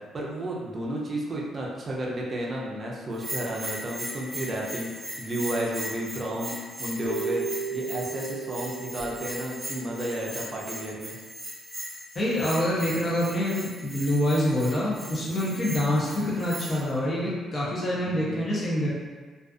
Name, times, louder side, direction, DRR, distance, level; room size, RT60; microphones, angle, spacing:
voice 1, 0.0-11.2 16.1-16.4 18.0-18.5, right 1 dB, 35° right, -3 dB, 0.5 m, -32 dB
Bell, 3.1-16.9, equal, 10° right, 0.8 m, -39 dB
sound 1, 7.0-10.8, right 5 dB, 60° left, 1.0 m, -35 dB
voice 2, 12.1-18.9, left 1 dB, 40° left, -6 dB, 0.7 m, -26 dB
2.4 x 2.3 x 2.4 m, 1.4 s
cardioid pair, 90°, 0 cm